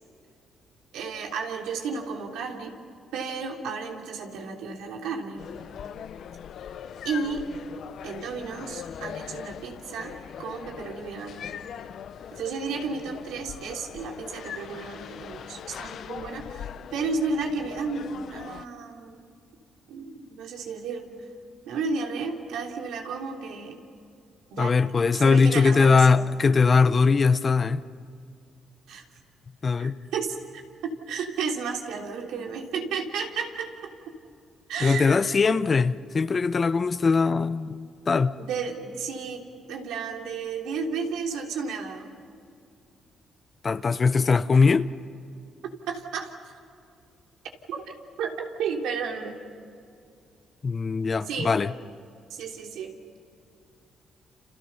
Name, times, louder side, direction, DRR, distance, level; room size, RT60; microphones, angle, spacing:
voice 1, 0.9-2.8 3.1-5.5 7.0-7.5 8.0-11.4 12.3-19.2 19.9-21.1 21.7-23.8 24.5-24.8 25.0-26.1 28.9-29.0 29.8-33.9 34.7-35.4 38.4-42.1 44.5-44.6 45.6-46.5 47.7-49.4 51.3-51.6 52.3-52.9, right 5 dB, 85° right, 3.2 m, -33 dB
sound 1, 5.4-18.7, left 8 dB, 65° left, 0.8 m, -41 dB
voice 2, 24.6-27.8 29.6-29.9 34.8-38.3 43.6-44.9 50.6-51.7, left 4 dB, 35° left, 0.8 m, -21 dB
30.0 x 29.0 x 5.7 m
cardioid pair, 90°, 0 cm